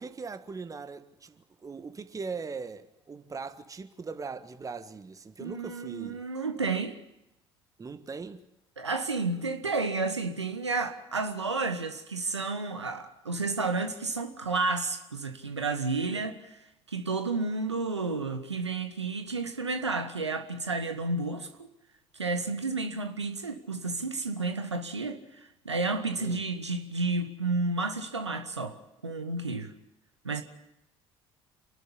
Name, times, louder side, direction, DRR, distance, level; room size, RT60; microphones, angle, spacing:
voice 1, 0.0-6.2 7.8-8.4 26.2-26.4, right 4 dB, 25° right, 1.6 m, -40 dB
voice 2, 5.4-7.0 8.8-21.7 22.1-28.8 29.0-29.7 30.2-30.4, right 3 dB, 90° right, 1.5 m, -31 dB
28.0 x 12.0 x 9.9 m
figure-of-eight pair, 60°, 14 cm